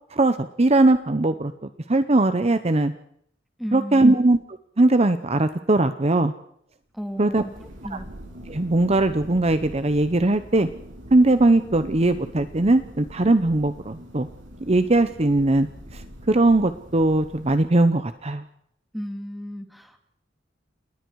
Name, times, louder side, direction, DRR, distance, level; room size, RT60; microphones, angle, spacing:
voice 1, 0.1-1.5 1.9-2.9 3.7-4.4 4.8-6.3 7.2-7.4 8.5-10.7 11.1-14.3 14.7-15.7 15.9-18.4, right 2 dB, 35° right, 11 dB, 0.8 m, -20 dB
voice 2, 3.6-4.1 6.9-8.1 18.9-20.0, equal, ahead, 5 dB, 2.4 m, -34 dB
Thunder, 7.0-18.1, equal, 85° right, 7.1 m, -43 dB
29.5 x 20.0 x 4.8 m, 0.69 s
head